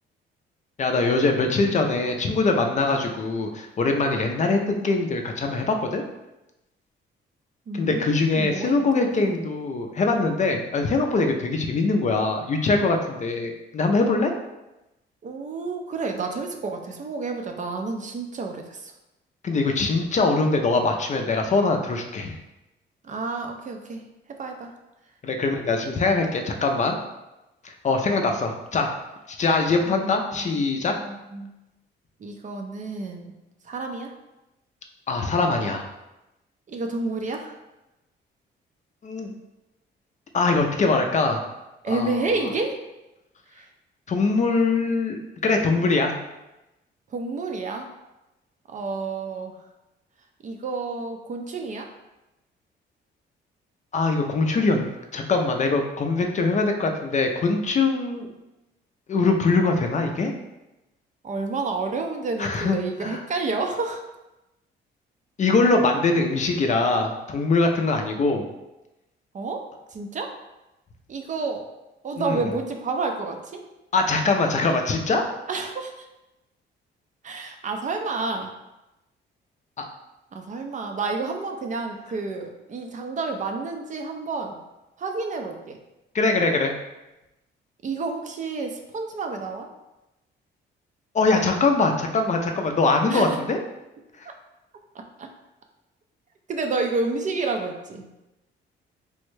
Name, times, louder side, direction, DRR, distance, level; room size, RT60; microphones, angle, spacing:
voice 1, 0.8-6.0 7.7-14.3 19.4-22.4 25.2-27.0 27.6-28.9 29.3-31.0 35.1-35.9 39.0-39.3 40.3-41.5 41.9-42.3 44.1-46.2 53.9-58.3 59.1-60.3 62.4-63.2 65.4-68.4 72.2-72.5 73.9-75.2 79.8-79.9 86.1-86.7 91.1-93.6 94.2-94.3, left 3 dB, 35° left, 4 dB, 0.4 m, -23 dB
voice 2, 7.7-9.4 15.2-18.9 23.0-24.0 24.4-24.7 29.8-30.6 31.0-31.5 32.2-33.3 33.7-34.1 36.7-37.5 41.8-42.8 43.5-43.7 47.1-47.9 48.7-49.6 50.4-51.9 61.2-64.0 69.3-70.3 71.1-71.7 72.0-73.6 75.5-75.9 77.2-78.5 80.3-84.6 85.0-85.8 87.8-89.7 93.1-93.4 94.9-95.3 96.5-98.1, right 3 dB, 40° right, 4 dB, 0.4 m, -30 dB
3.4 x 2.1 x 3.1 m, 0.96 s
cardioid pair, 90°, 20 cm